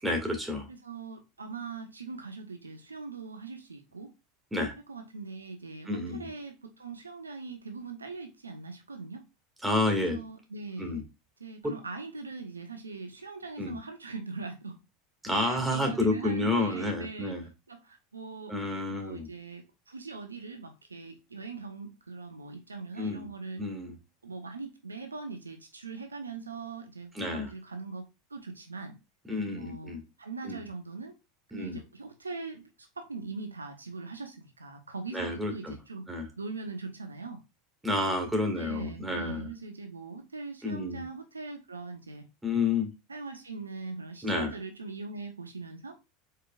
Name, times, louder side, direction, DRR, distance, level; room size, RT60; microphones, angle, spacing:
voice 1, 0.0-0.7 4.5-4.8 5.9-6.3 9.6-10.2 10.8-11.0 11.6-11.7 13.6-13.8 15.2-17.5 18.5-19.3 23.0-23.3 23.6-24.0 27.1-27.5 29.3-30.0 30.4-30.6 31.5-31.8 35.1-35.8 36.1-36.3 37.8-39.5 40.6-41.1 42.4-42.9 44.2-44.5, left 2 dB, 10° right, 1.9 m, -30 dB
voice 2, 0.7-4.1 4.9-9.2 10.1-11.0 11.4-14.8 15.3-17.4 17.7-18.5 18.9-23.7 24.2-28.9 29.5-31.2 31.5-36.1 36.4-37.4 38.1-38.2 38.5-42.3 43.1-46.0, right 4 dB, 90° right, 0.7 m, -41 dB
4.7 x 4.6 x 2.4 m
hypercardioid pair, 80°, 0 cm